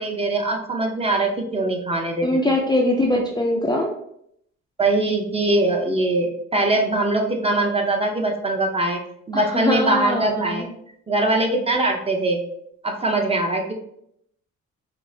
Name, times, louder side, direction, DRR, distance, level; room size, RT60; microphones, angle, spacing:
voice 1, 0.0-2.4 4.8-9.0 9.3-10.7 11.1-12.4 12.8-13.7, right 2 dB, 20° right, 2 dB, 0.7 m, -22 dB
voice 2, 2.2-3.9 9.3-10.7, left 1 dB, 15° left, 0 dB, 0.4 m, -22 dB
5.3 x 2.0 x 2.7 m, 0.72 s
cardioid pair, 90°, 30 cm